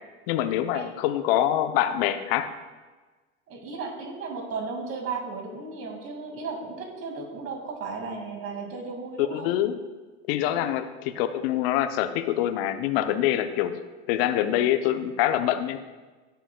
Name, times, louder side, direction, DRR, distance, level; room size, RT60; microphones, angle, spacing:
voice 1, 0.3-2.5 9.3-9.8 10.3-13.8 14.1-15.8, left 12 dB, 60° left, 10 dB, 0.8 m, -25 dB
voice 2, 3.5-9.5 10.4-10.7, right 4 dB, 40° right, 3 dB, 2.3 m, -35 dB
17.5 x 7.0 x 2.3 m, 1.3 s
hypercardioid pair, 75°, 34 cm